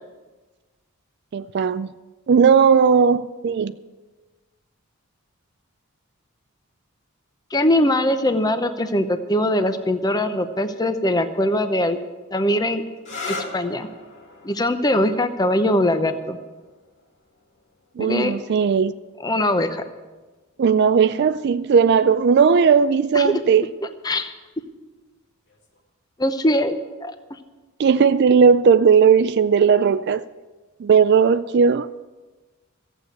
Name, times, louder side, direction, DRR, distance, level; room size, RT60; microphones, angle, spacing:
voice 1, 1.3-1.9 2.3-3.7 18.0-18.9 20.6-23.7 27.8-30.2 30.8-31.9, right 6 dB, 50° right, 13 dB, 0.3 m, -17 dB
voice 2, 7.5-12.0 12.3-12.8 13.3-13.9 14.4-16.4 18.0-18.3 19.2-19.8 23.1-23.4 24.0-24.3 26.2-27.1, left 1 dB, 20° left, 9 dB, 0.7 m, -21 dB
sound 1, 13.0-20.4 21.4-21.9 25.5-25.8, left 3 dB, 55° left, 2.2 m, -40 dB
14.5 x 8.2 x 7.9 m, 1.3 s
head